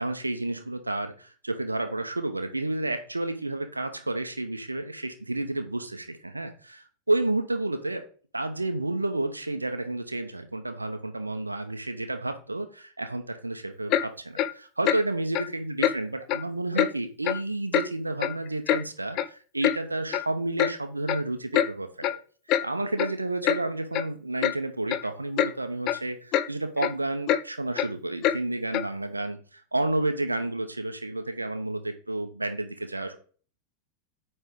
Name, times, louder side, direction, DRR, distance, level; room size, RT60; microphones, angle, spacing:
voice 1, 0.0-8.1 8.3-22.2 22.6-33.2, right 2 dB, 80° right, 7 dB, 0.8 m, -31 dB
Clock, 13.9-14.1 14.4-14.5 14.8-15.0 15.3-15.5 15.8-16.0 16.3-16.4 16.8-16.9 17.2-17.4 17.7-17.9 18.2-18.8 19.2-19.3 19.6-19.8 20.1-20.3 20.6-20.7 21.1-21.2 21.5-21.7 22.0-22.2 22.5-22.7 23.0-23.1 23.4-23.6 23.9-24.0 24.4-24.6 24.9-25.1 25.4-25.5 25.9-26.0 26.3-26.5 26.8-26.9 27.3-27.4 27.8-27.9 28.2-28.4 28.7-28.9, left 11 dB, 40° left, 0.4 m, -25 dB
9.1 x 3.4 x 5.2 m, 0.40 s
figure-of-eight pair, 90°, 0 cm